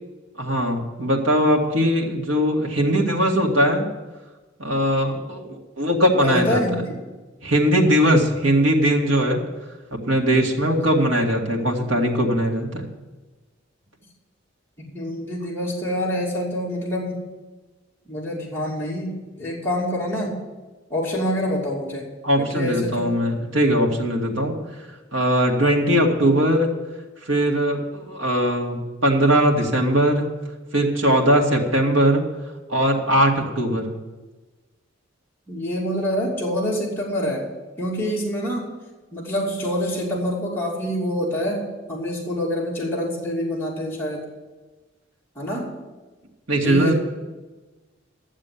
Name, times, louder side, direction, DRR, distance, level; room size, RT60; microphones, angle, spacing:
voice 1, 0.4-3.9 4.6-6.6 7.4-9.4 9.9-12.8 22.2-24.7 25.1-26.7 27.3-30.3 30.7-32.2 32.7-33.9 46.5-46.9, equal, 90° right, 0 dB, 2.1 m, -20 dB
voice 2, 6.2-7.0 10.7-11.0 14.9-17.2 18.1-20.4 20.9-22.0 22.4-23.1 35.5-37.5 37.8-38.7 39.1-44.3 45.4-45.7 46.6-46.9, equal, 10° left, -6 dB, 2.7 m, -26 dB
12.0 x 7.5 x 8.5 m, 1.2 s
head